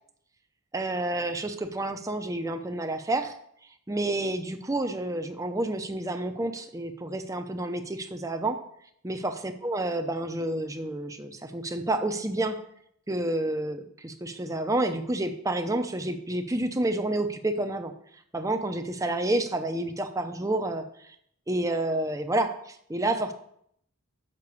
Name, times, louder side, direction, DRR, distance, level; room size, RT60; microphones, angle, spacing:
voice 1, 0.7-3.3 3.9-8.6 9.0-12.6 13.1-17.9 18.3-21.1 21.5-23.3, right 1 dB, 15° right, 6 dB, 0.7 m, -29 dB
6.7 x 6.0 x 6.9 m, 0.69 s
head